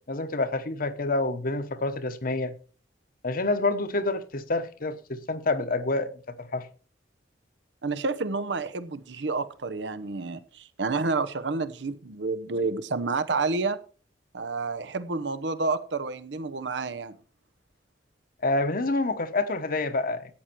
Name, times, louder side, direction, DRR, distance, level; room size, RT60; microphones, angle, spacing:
voice 1, 0.1-2.5 3.2-6.7 18.4-20.4, left 2 dB, 50° left, 1.0 m, -28 dB
voice 2, 7.8-13.8 14.3-17.2, right 3 dB, 75° right, 0.8 m, -29 dB
13.0 x 9.1 x 4.5 m
head